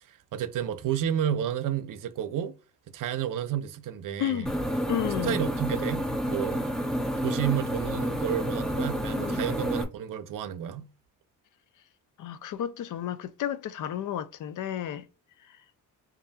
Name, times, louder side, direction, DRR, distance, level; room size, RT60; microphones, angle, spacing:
voice 1, 0.1-2.5 2.9-4.5 5.2-6.7 7.2-10.9, right 10 dB, 65° right, 0.6 m, -31 dB
voice 2, 4.2-4.5 4.9-5.4 9.2-9.5 12.2-15.1, left 10 dB, 60° left, 0.5 m, -32 dB
sound 1, 4.5-9.8, equal, ahead, 0.5 m, -29 dB
5.3 x 2.6 x 2.3 m
cardioid pair, 125°, 35 cm